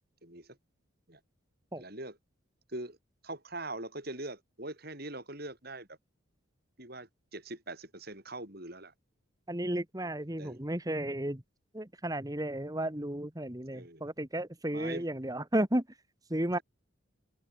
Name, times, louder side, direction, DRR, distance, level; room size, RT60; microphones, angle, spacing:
voice 1, 1.8-2.2 2.7-3.0 3.2-6.0 6.8-8.9 10.0-10.6 13.7-14.1 14.7-15.1, right 2 dB, 50° right, 7.7 m, -42 dB
voice 2, 9.5-11.4 11.7-15.8 16.3-16.6, right 1 dB, 15° right, 1.5 m, -33 dB
head